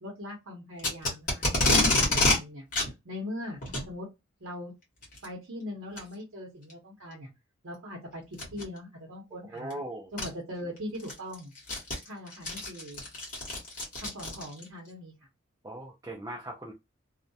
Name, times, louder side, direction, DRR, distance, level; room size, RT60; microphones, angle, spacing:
voice 1, 0.0-2.7 3.0-3.6 3.9-4.1 4.4-4.7 5.2-7.3 7.6-9.8 10.1-11.5 12.0-13.0 14.0-15.1, left 1 dB, 65° right, -1 dB, 0.7 m, -41 dB
Packing tape duct tape, 0.8-2.4 2.7-2.9 3.6-3.9 5.0-5.3 6.0-6.1 6.7-6.8 8.3-8.6 9.7-9.8 10.2-10.3 10.8-14.7, left 2 dB, 35° left, 1.0 m, -27 dB
voice 2, 9.5-10.1 15.6-16.7, right 1 dB, 15° right, 0 dB, 0.4 m, -39 dB
2.2 x 2.1 x 2.6 m, 0.22 s
head